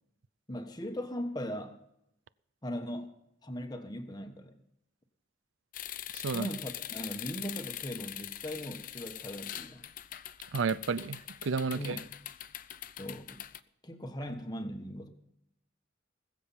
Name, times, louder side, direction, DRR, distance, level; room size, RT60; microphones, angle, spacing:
voice 1, 0.5-1.8 2.6-4.6 6.2-9.9 11.7-12.0 13.0-13.4 13.8-15.1, equal, 20° left, 1.3 m, -39 dB
sound 1, 5.7-13.6, left 12 dB, 40° left, 0.5 m, -43 dB
voice 2, 6.1-6.5 10.5-12.0, right 5 dB, 70° right, 0.5 m, -32 dB
20.5 x 7.6 x 5.7 m
head